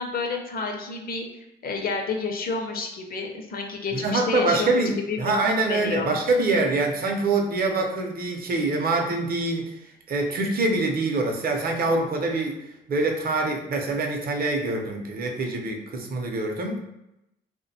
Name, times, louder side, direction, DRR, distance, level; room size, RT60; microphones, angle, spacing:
voice 1, 0.0-4.7 5.1-5.3 5.7-6.2, left 4 dB, 50° left, 3 dB, 0.5 m, -30 dB
voice 2, 3.9-12.6 12.9-16.8, right 2 dB, 50° right, 2 dB, 0.6 m, -25 dB
2.5 x 2.2 x 2.7 m, 0.88 s
cardioid pair, 90°, 20 cm